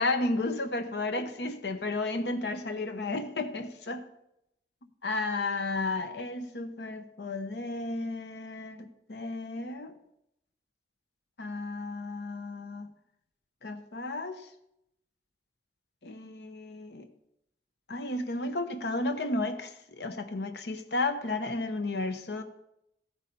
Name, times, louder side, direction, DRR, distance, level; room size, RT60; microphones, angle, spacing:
voice 1, 0.0-4.0 5.0-9.9 11.4-12.9 13.6-14.5 16.0-17.1 17.9-22.4, left 2 dB, 70° left, 10 dB, 0.9 m, -33 dB
15.0 x 8.7 x 5.4 m, 0.82 s
head